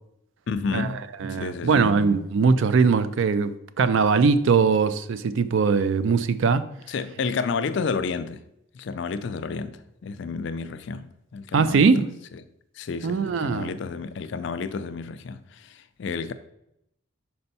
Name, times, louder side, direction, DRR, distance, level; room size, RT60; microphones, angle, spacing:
voice 1, 0.5-1.0 1.3-2.0 6.9-8.4 8.7-11.1 11.3-11.9 12.8-16.3, left 5 dB, 55° left, 0.4 m, -31 dB
voice 2, 1.2-6.6 11.5-12.1 13.0-13.7, right 5 dB, 65° right, 0.4 m, -21 dB
5.5 x 4.3 x 4.0 m
head